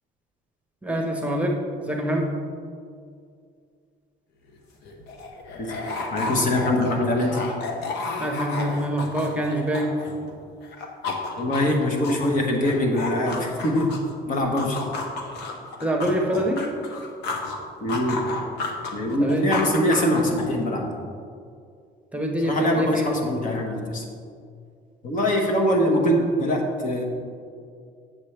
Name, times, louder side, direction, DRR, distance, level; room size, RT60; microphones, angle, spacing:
voice 1, 0.8-2.3 8.2-9.9 15.8-16.6 19.2-19.5 22.1-23.1, equal, 5° right, 1 dB, 0.9 m, -25 dB
sound 1, 4.5-4.6 4.8-10.3 10.6-14.1 14.6-17.6 17.9-20.6, left 3 dB, 75° left, 1.0 m, -32 dB
voice 2, 6.1-7.4 11.4-14.0 14.3-14.8 17.8-18.2 18.9-20.9 22.4-24.0 25.0-27.0, left 1 dB, 50° left, 1 dB, 1.3 m, -23 dB
7.6 x 7.1 x 3.4 m, 2.3 s
cardioid pair, 110°, 17 cm